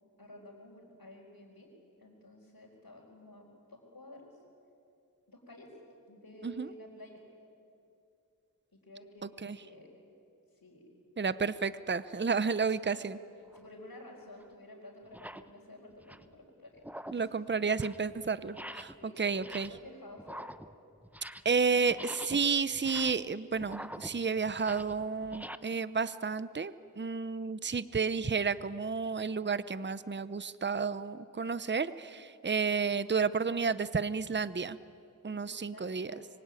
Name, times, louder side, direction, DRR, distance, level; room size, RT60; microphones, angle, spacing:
voice 1, 0.2-1.7 2.0-4.4 5.3-5.7 6.1-7.2 8.7-9.9 10.5-10.8 12.3-13.1 13.5-16.8 17.1-17.3 19.0-20.5 35.3-36.3, left 1 dB, 80° left, -6 dB, 4.4 m, -52 dB
voice 2, 9.2-9.6 11.2-13.2 17.1-19.7 21.4-34.8 35.2-36.1, right 5 dB, 30° right, 15 dB, 0.7 m, -31 dB
sound 1, 13.5-13.7 14.4-14.5 15.0-15.5 15.9-16.4 16.8-17.3 17.6-18.1 18.5-19.0 19.3-19.9 20.2-21.6 21.9-25.6, equal, 5° right, 0.9 m, -46 dB
25.5 x 23.5 x 9.1 m, 2.6 s
wide cardioid pair, 40°, 35 cm